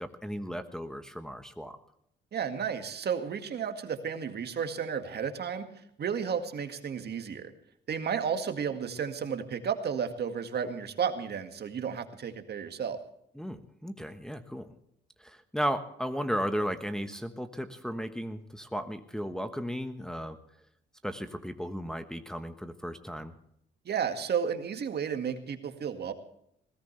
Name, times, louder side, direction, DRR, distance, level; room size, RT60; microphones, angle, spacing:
voice 1, 0.0-1.8 13.4-14.7 15.2-20.4 21.0-23.3, equal, 5° left, 6 dB, 1.2 m, -35 dB
voice 2, 2.3-5.7 6.0-7.5 7.9-13.0 23.9-26.1, right 7 dB, 55° right, 7 dB, 2.0 m, -32 dB
20.0 x 17.0 x 3.3 m, 0.74 s
cardioid pair, 90°, 20 cm